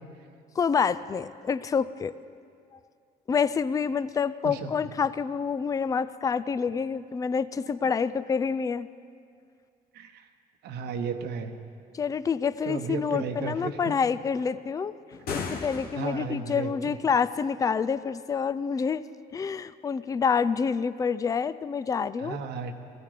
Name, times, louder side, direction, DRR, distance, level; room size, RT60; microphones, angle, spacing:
voice 1, 0.6-2.1 3.3-8.9 11.9-14.9 15.3-19.0 19.3-22.4, left 6 dB, 20° left, 15 dB, 0.4 m, -27 dB
voice 2, 9.9-10.3 10.6-11.5 12.6-13.9 15.9-17.0 22.2-22.8, right 5 dB, 75° right, 7 dB, 1.2 m, -34 dB
sound 1, 15.1-16.4, left 5 dB, 65° left, 1.6 m, -35 dB
19.0 x 15.0 x 5.0 m, 2.3 s
cardioid pair, 110°, 17 cm